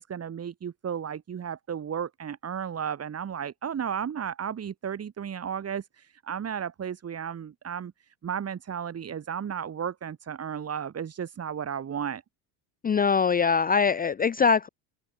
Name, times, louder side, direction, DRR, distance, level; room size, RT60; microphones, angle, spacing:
voice 1, 0.0-12.2, right 8 dB, 35° right, 6.8 m, -34 dB
voice 2, 12.8-14.7, left 6 dB, 20° left, 0.7 m, -22 dB
open air
supercardioid pair, 115°, 43 cm